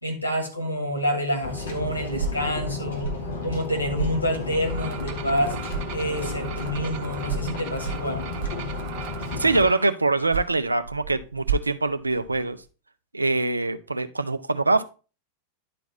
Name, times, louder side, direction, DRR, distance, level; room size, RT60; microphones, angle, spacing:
voice 1, 0.0-3.1 3.4-5.6 5.9-8.3, equal, 85° left, 2 dB, 1.8 m, -27 dB
sound 1, 1.4-9.7, left 3 dB, 60° left, 1.9 m, -33 dB
sound 2, 2.1-5.4 5.7-9.2 10.0-12.7, right 5 dB, 65° right, 2.0 m, -35 dB
sound 3, 4.7-9.8, right 7 dB, 45° right, 1.0 m, -40 dB
voice 2, 9.4-12.6 13.1-14.8, right 3 dB, 80° right, 11 dB, 0.5 m, -23 dB
10.5 x 4.1 x 4.1 m, 0.34 s
figure-of-eight pair, 90°, 0 cm